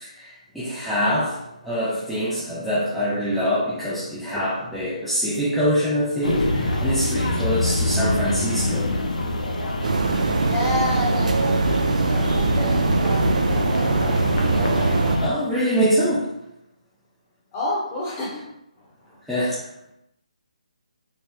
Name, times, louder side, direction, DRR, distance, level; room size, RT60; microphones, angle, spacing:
voice 1, 0.0-8.9 15.2-16.3 19.2-19.6, equal, ahead, -11 dB, 0.4 m, -24 dB
sound 1, 6.2-15.3, left 1 dB, 80° left, 0.7 m, -25 dB
sound 2, 9.8-15.2, right 3 dB, 75° right, 0.4 m, -22 dB
voice 2, 10.4-14.2 14.5-15.1 17.5-19.2, left 2 dB, 20° left, -4 dB, 0.9 m, -31 dB
4.2 x 2.0 x 3.4 m, 0.82 s
hypercardioid pair, 165°, 4 cm